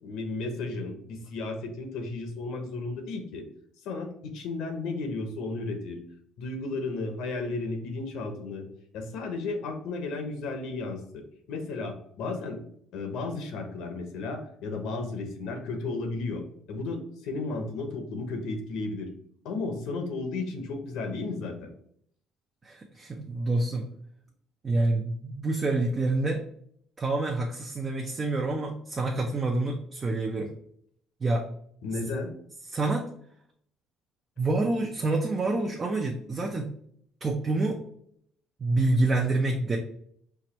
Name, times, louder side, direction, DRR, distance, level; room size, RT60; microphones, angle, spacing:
voice 1, 0.0-3.4 3.8-6.0 6.4-8.7 8.9-12.6 12.9-19.1 19.4-21.7 31.8-32.3, left 3 dB, 75° left, 5 dB, 1.0 m, -34 dB
voice 2, 22.6-23.9 24.6-26.4 27.0-30.5 31.2-31.4 32.7-33.1 34.4-36.7 37.2-37.8 38.6-39.8, right 2 dB, 25° right, 1 dB, 0.6 m, -27 dB
4.6 x 2.5 x 4.4 m, 0.65 s
cardioid pair, 130°, 0 cm